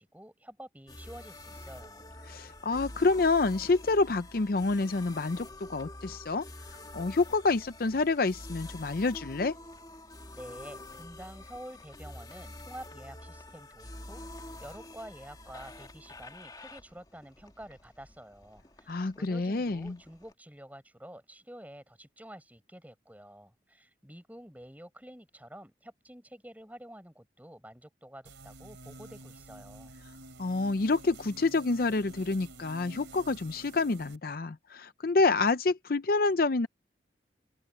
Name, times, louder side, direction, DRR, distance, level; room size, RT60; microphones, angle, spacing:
voice 1, 0.0-2.2 10.4-14.2 14.6-29.9, right 1 dB, 10° right, 7.0 m, -49 dB
sound 1, 0.9-20.3, left 1 dB, 20° left, 2.5 m, -47 dB
voice 2, 2.3-6.4 6.9-9.6 18.9-20.0 30.4-36.7, left 3 dB, 50° left, 0.5 m, -28 dB
sound 2, 28.2-34.2, right 2 dB, 90° right, 4.1 m, -50 dB
head